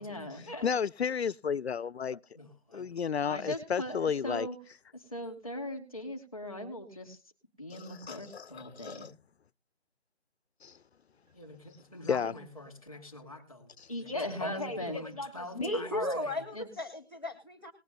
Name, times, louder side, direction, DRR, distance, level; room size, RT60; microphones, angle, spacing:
voice 1, 0.0-0.7 2.4-2.9 3.2-4.6 4.9-7.2 7.6-9.1 11.3-16.7, left 1 dB, 5° right, 2.2 m, -39 dB
voice 2, 0.6-2.2 2.7-4.5 7.7-9.1 10.6-10.8 12.1-12.3 13.8-13.9, left 7 dB, 75° left, 0.5 m, -32 dB
voice 3, 15.5-17.7, left 1 dB, 20° left, 1.0 m, -35 dB
19.5 x 9.0 x 2.6 m
figure-of-eight pair, 180°, 32 cm